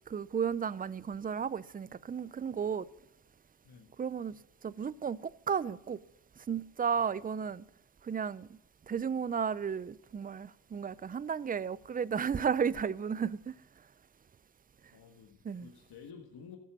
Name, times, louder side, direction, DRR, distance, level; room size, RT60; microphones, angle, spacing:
voice 1, 0.1-2.9 4.0-4.3 4.6-6.0 6.5-7.7 8.0-8.6 8.9-13.5 15.4-15.7, right 7 dB, 25° right, 0.4 m, -33 dB
voice 2, 14.9-16.6, left 6 dB, 90° left, 1.7 m, -51 dB
14.0 x 8.4 x 7.4 m
cardioid pair, 100°, 37 cm